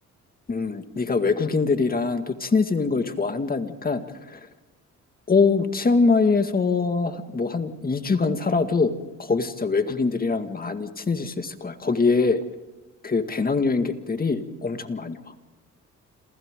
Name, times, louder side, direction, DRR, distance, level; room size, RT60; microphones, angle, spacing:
voice 1, 0.5-4.0 4.3-4.4 5.3-8.9 9.2-12.4 13.0-15.2, left 4 dB, 30° left, 7 dB, 2.0 m, -23 dB
28.5 x 27.5 x 3.8 m, 1.1 s
cardioid pair, 90°, 30 cm